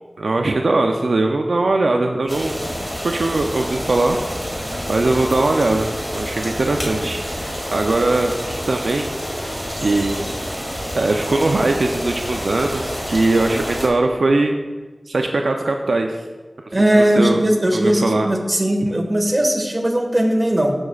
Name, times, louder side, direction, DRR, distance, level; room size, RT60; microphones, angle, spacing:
voice 1, 0.2-2.5 3.0-4.2 4.9-9.1 9.8-10.2 10.5-14.5 15.1-16.2 17.0-17.4 17.7-18.3, right 2 dB, 80° right, 3 dB, 0.5 m, -20 dB
sound 1, 2.3-13.9, equal, ahead, 2.3 m, -28 dB
voice 2, 16.7-20.7, right 1 dB, 35° right, 2 dB, 1.5 m, -18 dB
15.0 x 6.1 x 2.4 m, 1.3 s
cardioid pair, 40°, 0 cm